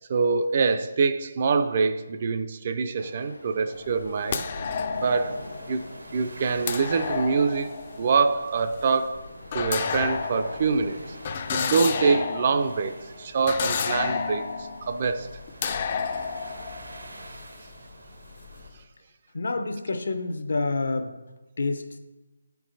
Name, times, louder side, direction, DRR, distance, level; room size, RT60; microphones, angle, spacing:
voice 1, 0.1-4.5 4.9-5.4 5.7-5.8 6.1-9.2 9.5-11.2 11.5-15.3, right 4 dB, 40° right, 0.4 m, -25 dB
sound 1, 3.0-12.4, left 1 dB, 90° left, 1.0 m, -45 dB
sound 2, 3.7-17.9 18.2-18.7, left 6 dB, 35° left, 0.4 m, -32 dB
sound 3, 4.9-18.7, right 2 dB, 80° right, 1.0 m, -47 dB
voice 2, 19.3-21.1 21.6-21.8, left 3 dB, 65° left, 0.7 m, -28 dB
8.0 x 4.6 x 3.9 m
figure-of-eight pair, 155°, 0 cm